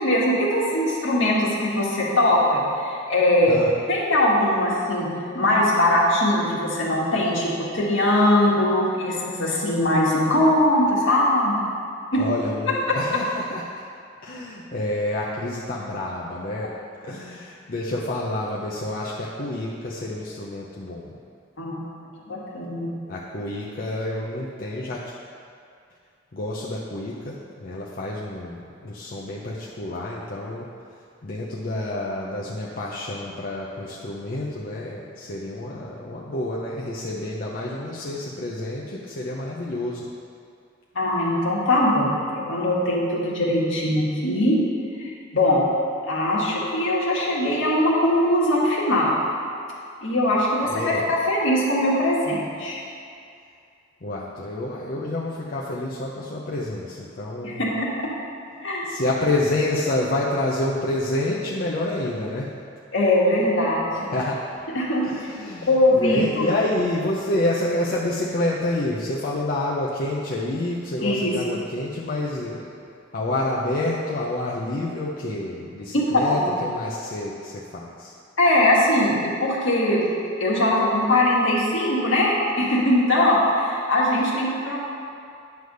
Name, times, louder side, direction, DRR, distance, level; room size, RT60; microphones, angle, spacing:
voice 1, 0.0-3.6 3.9-5.1 5.3-11.6 12.1-12.2 21.6-21.9 22.2-22.9 40.9-44.6 45.0-45.6 46.1-49.2 50.0-52.8 57.4-58.1 58.6-58.9 62.9-63.9 64.7-65.0 65.7-66.5 71.0-71.3 75.9-76.0 76.3-76.4 78.4-80.0 80.4-84.8, left 1 dB, 70° left, -5 dB, 1.6 m, -21 dB
voice 2, 12.2-13.9 14.2-16.7 17.0-21.1 23.1-25.1 26.3-30.7 31.2-40.1 50.6-51.1 54.0-57.7 58.8-62.5 63.9-64.7 65.0-72.8 73.1-78.2, left 1 dB, 45° left, -5 dB, 0.6 m, -28 dB
9.4 x 3.4 x 6.5 m, 2.4 s
head